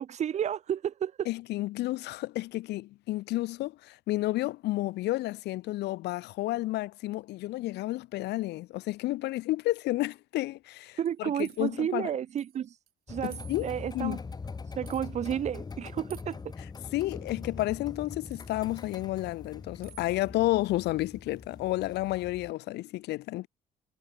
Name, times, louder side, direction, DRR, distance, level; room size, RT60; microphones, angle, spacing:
voice 1, 0.0-1.3 11.0-12.7 13.1-14.2 14.8-16.4, right 9 dB, 45° right, 0.6 m, -31 dB
voice 2, 1.3-12.1 13.2-14.2 16.9-23.5, left 17 dB, 80° left, 2.1 m, -31 dB
sound 1, 11.0-11.8 12.4-12.6 12.9-13.0 13.3-14.0 14.9-15.0 16.1-16.4 18.3-18.6 19.8-20.1, right 12 dB, 65° right, 3.9 m, -53 dB
sound 2, 13.1-22.5, left 4 dB, 25° left, 1.5 m, -43 dB
cardioid pair, 110°, 17 cm